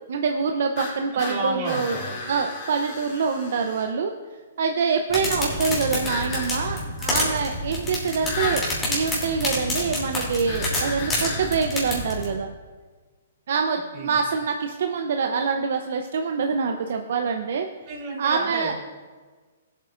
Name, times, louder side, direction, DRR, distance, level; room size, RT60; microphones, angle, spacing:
voice 1, 0.1-2.0 2.3-4.1 4.6-12.5 13.5-17.7 18.2-18.7, right 5 dB, 65° right, 4 dB, 0.7 m, -25 dB
sound 1, 0.7-3.9 6.0-6.5 8.2-8.7 10.5-11.6, left 3 dB, 40° left, 2.7 m, -34 dB
voice 2, 1.1-2.2 13.9-14.2 17.9-18.7, right 2 dB, 35° right, -6 dB, 3.0 m, -31 dB
sound 2, 5.1-12.3, left 1 dB, 15° left, 2.9 m, -28 dB
17.5 x 8.2 x 2.5 m, 1.4 s
hypercardioid pair, 155°, 0 cm